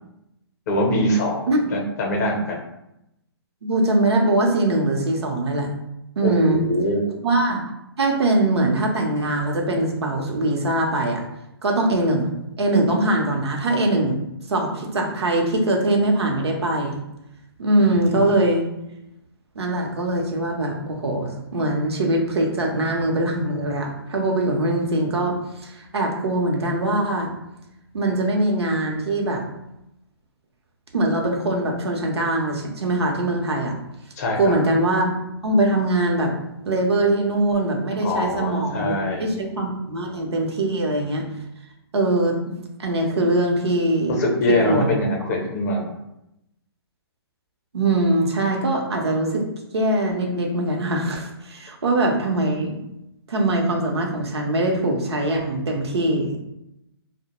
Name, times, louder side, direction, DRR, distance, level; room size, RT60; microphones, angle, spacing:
voice 1, 0.7-2.6 6.2-7.1 17.9-18.2 34.2-34.5 38.0-39.3 44.1-45.8, left 1 dB, 40° left, 0 dB, 0.6 m, -23 dB
voice 2, 3.6-5.7 6.2-6.6 7.2-7.6 8.0-11.2 11.6-14.2 14.5-17.0 17.6-18.6 19.6-27.3 27.9-29.4 30.9-33.7 34.4-35.1 35.4-36.3 36.7-41.3 41.9-42.4 42.8-44.1 44.5-44.9 47.7-49.5 49.7-52.7 53.3-56.4, right 1 dB, 80° right, 1 dB, 0.7 m, -22 dB
2.2 x 2.1 x 2.9 m, 0.86 s
hypercardioid pair, 145°, 14 cm